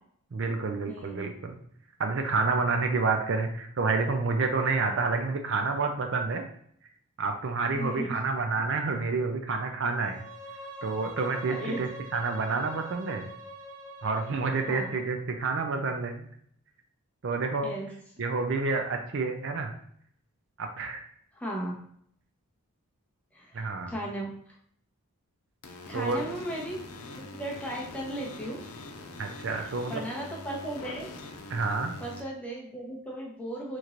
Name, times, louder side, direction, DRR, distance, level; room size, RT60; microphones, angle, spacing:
voice 1, 0.3-1.6 2.0-6.4 7.2-10.3 10.8-13.2 14.0-16.3 17.2-17.7 18.2-19.7 20.6-21.0 23.5-23.9 25.9-26.2 29.2-30.0 31.5-32.0, right 4 dB, 55° right, 4 dB, 0.4 m, -29 dB
voice 2, 0.9-1.3 4.8-4.9 7.7-8.2 11.5-11.8 14.7-14.9 17.6-17.9 21.4-21.7 23.3-24.3 25.9-26.8 27.2-28.7 29.5-31.1 32.0-33.8, right 1 dB, 5° left, -4 dB, 0.8 m, -36 dB
Bowed string instrument, 9.9-15.1, equal, 90° right, 0.8 m, -44 dB
sound 1, 25.6-32.2, left 2 dB, 85° left, 0.6 m, -43 dB
4.3 x 3.0 x 2.5 m, 0.64 s
head